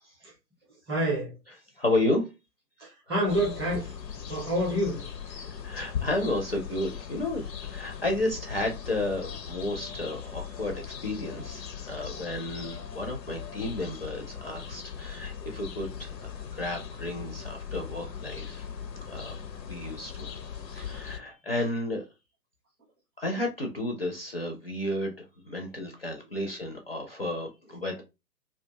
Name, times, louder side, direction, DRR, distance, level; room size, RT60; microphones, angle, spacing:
voice 1, 0.9-1.3 2.8-3.9 4.3-5.1 19.2-19.3 19.8-19.9, equal, 15° right, 0.6 m, -28 dB
voice 2, 1.8-2.3 5.4-18.7 19.1-19.4 19.7-20.3 20.7-22.0 23.2-28.0, left 1 dB, 40° left, 0.4 m, -32 dB
sound 1, 3.3-21.2, left 7 dB, 80° left, 0.6 m, -39 dB
2.3 x 2.2 x 2.7 m
figure-of-eight pair, 130°, 49 cm